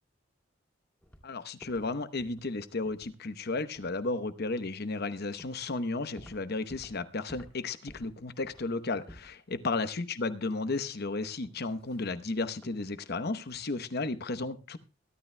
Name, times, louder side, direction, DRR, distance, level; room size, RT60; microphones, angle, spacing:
sound 1, 1.0-1.3 1.6-1.9 2.2-2.5 2.8-3.2 3.6-3.9 4.9-5.0 5.4-5.7 5.9-7.0 7.3-7.6 7.9-9.4 9.7-9.9 10.2-10.3 11.4-12.1 12.6-12.8 13.3-13.7 13.9-14.1, equal, 10° left, 2.5 m, -53 dB
voice 1, 1.2-14.8, left 3 dB, 55° left, 12 dB, 0.9 m, -34 dB
22.5 x 12.0 x 2.2 m, 0.31 s
head